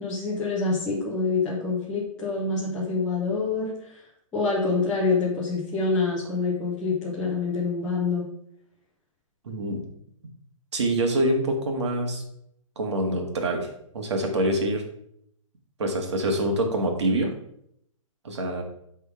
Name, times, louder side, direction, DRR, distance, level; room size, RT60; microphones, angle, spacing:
voice 1, 0.0-3.7 4.3-8.3, left 4 dB, 5° left, -9 dB, 0.7 m, -26 dB
voice 2, 9.5-9.8 10.7-12.2 12.8-13.7 13.9-14.8 15.8-17.3 18.2-18.6, right 1 dB, 55° right, 3 dB, 1.7 m, -25 dB
9.3 x 3.7 x 4.9 m, 0.73 s
hypercardioid pair, 180°, 18 cm